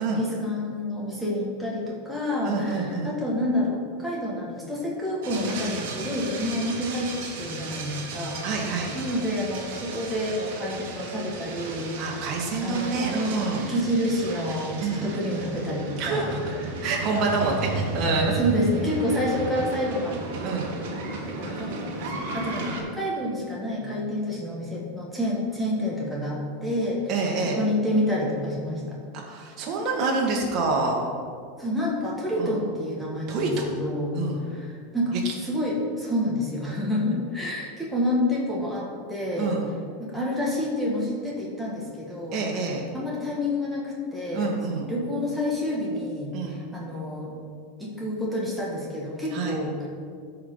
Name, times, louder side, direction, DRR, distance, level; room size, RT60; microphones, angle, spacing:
voice 1, 0.0-7.1 7.4-12.0 12.6-16.3 16.7-16.8 18.1-20.3 21.2-29.0 31.6-34.2 34.5-39.5 40.0-42.4 42.9-47.4 47.8-49.9, left 1 dB, ahead, -5 dB, 1.9 m, -29 dB
voice 2, 2.4-3.1 8.4-8.9 12.0-13.6 14.8-15.1 16.0-16.4 16.8-18.4 20.4-20.7 27.1-27.6 29.1-31.0 32.4-32.5 33.3-33.7 34.1-34.4 35.2-35.3 39.4-39.7 42.3-42.9 44.3-44.9 46.3-46.6 49.3-49.5, right 3 dB, 45° right, -2 dB, 1.7 m, -27 dB
sound 1, 5.2-22.8, right 3 dB, 70° right, 1.6 m, -34 dB
13.5 x 4.8 x 4.0 m, 2.2 s
hypercardioid pair, 100°, 0 cm